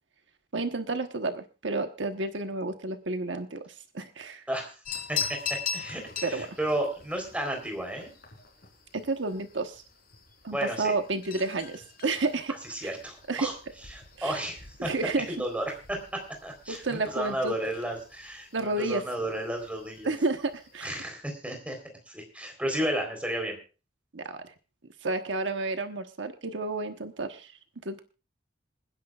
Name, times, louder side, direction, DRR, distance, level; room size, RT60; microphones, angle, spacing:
voice 1, 0.5-4.4 6.2-6.6 8.9-9.8 10.4-12.5 12.8-12.9 13.3-13.5 14.2-14.4 14.8-15.3 16.7-17.5 18.5-19.0 20.0-20.9 24.1-24.5 25.0-27.5 27.8-28.0, right 3 dB, 80° right, 7 dB, 1.2 m, -31 dB
sound 1, 4.8-21.0, left 6 dB, 50° left, 4.0 m, -42 dB
voice 2, 5.1-8.1 10.5-10.9 12.5-13.5 13.9-14.9 15.3-20.1 20.8-21.8 22.1-23.6, right 1 dB, 5° right, 3 dB, 3.8 m, -33 dB
27.0 x 10.0 x 2.4 m, 0.33 s
head